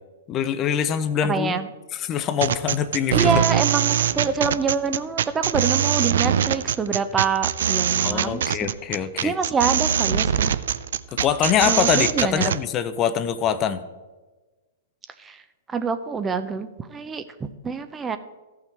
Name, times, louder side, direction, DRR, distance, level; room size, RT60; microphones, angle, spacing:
voice 1, 0.3-1.6 1.9-3.3 8.0-9.3 11.1-13.8, left 8 dB, 30° left, 12 dB, 0.6 m, -24 dB
voice 2, 1.2-1.7 3.1-8.7 9.2-10.6 11.6-12.5 15.2-15.4 15.7-18.2, right 5 dB, 15° right, 10 dB, 0.6 m, -26 dB
sound 1, 2.4-12.6, right 9 dB, 70° right, 0.4 m, -22 dB
14.0 x 5.7 x 4.5 m, 1.2 s
hypercardioid pair, 120°, 0 cm